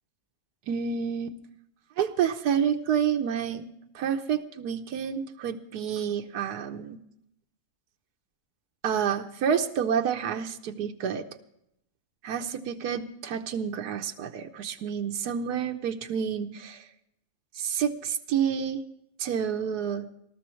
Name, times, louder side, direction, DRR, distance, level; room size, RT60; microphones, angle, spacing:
voice 1, 0.7-1.3 2.0-3.7 3.9-7.0 8.8-11.2 12.2-16.9 17.5-18.8 19.2-20.1, right 8 dB, 90° right, 6 dB, 1.4 m, -29 dB
20.0 x 13.0 x 3.1 m, 0.77 s
omnidirectional pair, 1.6 m